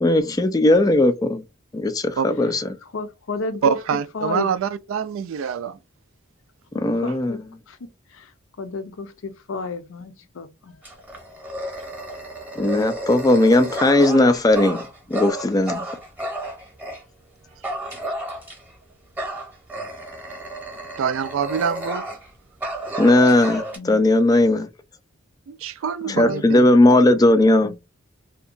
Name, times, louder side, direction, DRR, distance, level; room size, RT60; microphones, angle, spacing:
voice 1, 0.0-1.4 1.7-2.7 6.8-7.4 12.6-14.8 15.1-15.8 23.0-24.7 26.1-27.7, left 1 dB, 20° left, 0.3 m, -17 dB
voice 2, 2.9-3.8 4.1-4.5 6.7-7.4 7.7-7.8 8.1-10.8 23.8-24.0 26.0-26.4 27.6-27.8, left 3 dB, 75° left, 0.5 m, -32 dB
voice 3, 3.6-5.8 21.0-22.0 25.5-26.6, right 7 dB, 75° right, 0.3 m, -25 dB
Dog, 10.8-17.0 17.6-18.8 19.2-22.3 22.6-23.8, right 1 dB, 10° right, 0.8 m, -32 dB
2.7 x 2.2 x 2.4 m
head